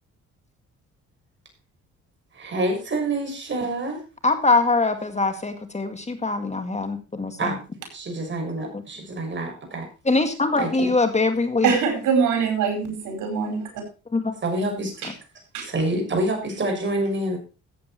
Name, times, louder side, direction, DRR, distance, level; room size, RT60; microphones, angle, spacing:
voice 1, 2.3-4.0 7.4-7.6 7.9-9.9 10.6-10.9 14.4-15.0 15.6-17.4, right 1 dB, 40° right, 2 dB, 6.6 m, -27 dB
voice 2, 4.2-7.5 10.1-11.7 14.1-14.3, left 3 dB, 20° left, 8 dB, 1.9 m, -22 dB
voice 3, 11.6-13.7 15.0-15.1 15.5-15.6, right 6 dB, 85° right, 4 dB, 5.0 m, -23 dB
14.5 x 8.5 x 4.4 m, 0.32 s
cardioid pair, 90°, 30 cm